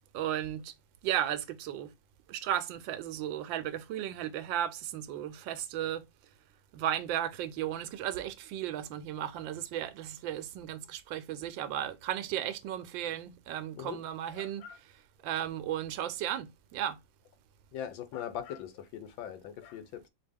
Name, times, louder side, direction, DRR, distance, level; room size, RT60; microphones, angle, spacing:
voice 1, 0.1-0.7 1.0-1.9 2.3-6.1 6.7-17.0, right 11 dB, 80° right, 1.3 m, -35 dB
voice 2, 14.4-14.8 17.7-20.1, left 10 dB, 85° left, 1.4 m, -41 dB
4.2 x 2.8 x 3.4 m
omnidirectional pair, 2.0 m